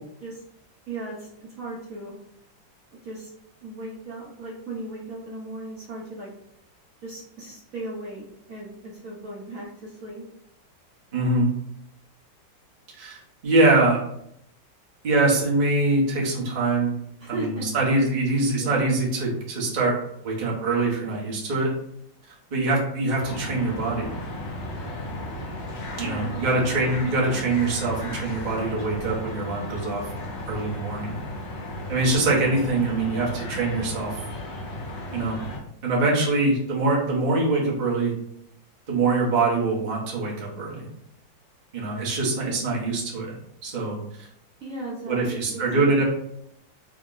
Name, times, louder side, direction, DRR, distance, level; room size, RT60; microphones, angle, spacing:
voice 1, 0.9-2.1 3.0-3.3 3.6-6.3 7.0-10.2 17.2-17.7 18.6-18.9 26.0-26.4 44.6-46.0, right 2 dB, 55° right, -5 dB, 1.0 m, -37 dB
voice 2, 11.1-11.5 13.0-14.0 15.0-16.9 17.3-20.0 20.2-21.7 22.5-24.1 25.9-30.0 30.5-31.2 31.9-34.2 35.1-35.4 35.8-38.1 38.9-40.9 41.7-43.3 43.6-44.3 45.1-46.0, right 2 dB, 40° right, -4 dB, 0.7 m, -24 dB
sound 1, 23.2-35.6, left 1 dB, 70° left, 1.5 m, -35 dB
3.7 x 2.1 x 3.7 m, 0.74 s
omnidirectional pair, 2.1 m